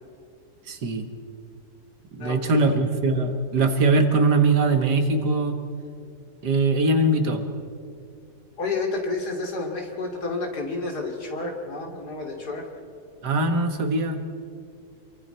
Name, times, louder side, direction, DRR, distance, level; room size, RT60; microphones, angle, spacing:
voice 1, 0.7-1.1 2.1-5.6 6.4-7.4 13.2-14.2, right 2 dB, 80° right, 6 dB, 2.2 m, -21 dB
voice 2, 2.2-2.8 8.6-12.7, left 3 dB, 75° left, 1 dB, 3.2 m, -30 dB
28.0 x 23.0 x 4.5 m, 2.3 s
omnidirectional pair, 1.8 m